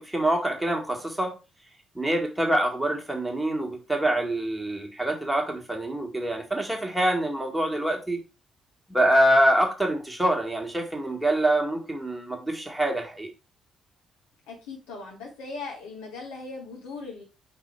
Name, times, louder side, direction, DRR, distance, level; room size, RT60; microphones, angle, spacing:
voice 1, 0.0-1.3 2.0-8.2 8.9-13.3, right 1 dB, 5° right, 2 dB, 1.7 m, -25 dB
voice 2, 14.5-17.2, left 3 dB, 70° left, -3 dB, 2.5 m, -39 dB
5.4 x 4.2 x 4.6 m, 0.30 s
figure-of-eight pair, 40°, 0 cm